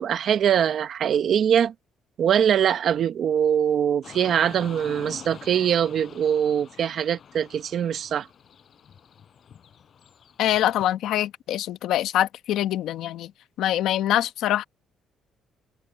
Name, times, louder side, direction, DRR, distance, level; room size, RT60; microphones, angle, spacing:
voice 1, 0.0-1.7 2.2-8.3, right 9 dB, 50° right, 1.1 m, -22 dB
Car passing by / Traffic noise roadway noise, 4.0-10.9, left 8 dB, 45° left, 6.3 m, -46 dB
voice 2, 10.4-13.3 13.6-14.6, left 12 dB, 80° left, 1.2 m, -24 dB
cardioid pair, 150°, 0 cm